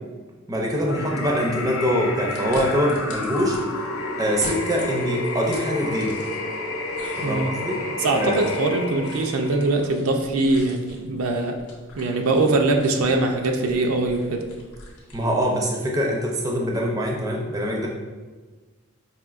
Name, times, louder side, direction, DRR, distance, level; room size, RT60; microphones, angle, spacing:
voice 1, 0.5-3.6 4.2-6.2 7.2-7.8 8.1-8.4 15.1-17.9, equal, 15° right, -1 dB, 0.4 m, -24 dB
sound 1, 0.9-9.9, left 2 dB, 65° left, 0.5 m, -30 dB
sound 2, 2.3-3.6 4.2-6.6 6.9-15.5, left 2 dB, 90° left, 0.8 m, -45 dB
voice 2, 7.2-7.6 8.0-11.6 11.9-14.4, right 2 dB, 85° right, 4 dB, 0.4 m, -22 dB
4.9 x 2.6 x 2.4 m, 1.3 s
head